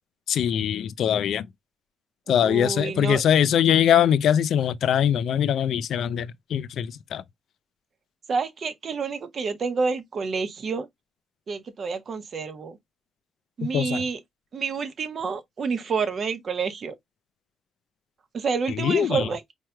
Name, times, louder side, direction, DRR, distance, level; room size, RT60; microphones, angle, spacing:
voice 1, 0.3-1.4 2.3-7.2 13.6-14.0 18.7-19.3, left 9 dB, 70° left, 0.4 m, -22 dB
voice 2, 2.3-3.2 8.3-10.9 11.5-12.8 13.6-14.2 14.5-16.9 18.3-19.4, right 5 dB, 50° right, 0.8 m, -28 dB
4.4 x 3.1 x 2.3 m
cardioid pair, 90°, 0 cm